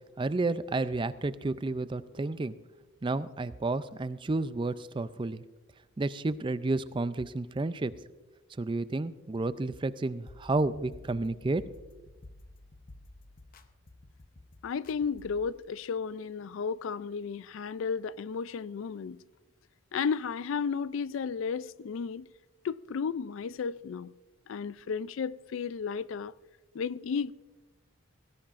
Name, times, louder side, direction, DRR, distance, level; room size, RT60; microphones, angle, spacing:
voice 1, 0.2-2.5 3.0-5.4 6.0-7.9 8.6-11.6, right 2 dB, 25° right, 0.4 m, -31 dB
sound 1, 10.3-15.5, left 1 dB, 45° left, 0.8 m, -52 dB
voice 2, 14.6-19.2 19.9-22.3 22.6-24.1 24.5-26.3 26.7-27.3, left 6 dB, 70° left, 0.4 m, -33 dB
19.0 x 16.5 x 2.5 m
head